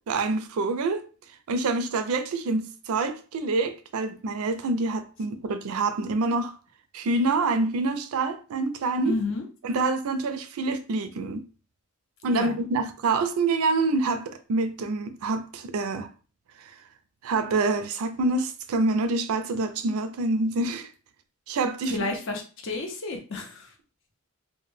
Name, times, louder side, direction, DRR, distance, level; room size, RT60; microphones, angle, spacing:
voice 1, 0.1-1.1 1.5-6.6 6.9-9.2 9.6-11.5 12.2-16.1 17.2-20.9 21.5-21.9, right 3 dB, 90° right, 0.4 m, -26 dB
voice 2, 9.0-9.4 12.3-12.6 21.9-23.7, left 3 dB, 60° left, 0.6 m, -31 dB
2.1 x 2.1 x 3.1 m
head